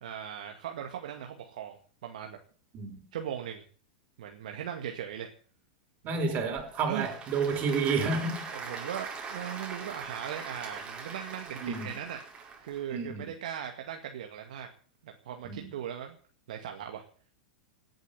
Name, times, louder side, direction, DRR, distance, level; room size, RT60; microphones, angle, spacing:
voice 1, 0.0-2.4 3.1-3.6 4.2-5.3 6.0-6.3 6.9-7.1 8.5-12.2 12.6-14.7 15.0-16.2 16.5-17.0, right 9 dB, 70° right, 2.1 m, -39 dB
voice 2, 6.0-8.5 11.6-11.9 12.9-13.3 15.4-15.7, right 4 dB, 40° right, 4.9 m, -30 dB
Applause / Crowd, 6.6-12.8, right 5 dB, 25° right, 4.6 m, -42 dB
18.0 x 8.0 x 7.9 m
hypercardioid pair, 105°, 4 cm